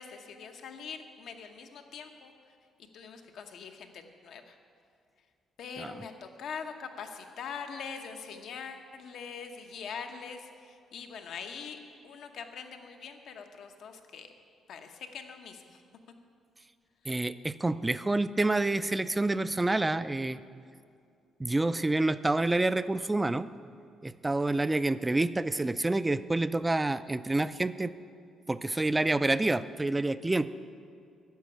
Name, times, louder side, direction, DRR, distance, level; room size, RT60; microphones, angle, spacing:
voice 1, 0.0-2.6 2.9-4.6 5.6-14.3 14.7-15.8, left 6 dB, 70° left, 5 dB, 1.0 m, -43 dB
voice 2, 17.1-20.4 21.4-23.5 24.0-27.9 28.5-30.5, right 2 dB, 15° right, 14 dB, 0.4 m, -28 dB
10.5 x 6.8 x 8.4 m, 2.3 s
cardioid pair, 90°, 0 cm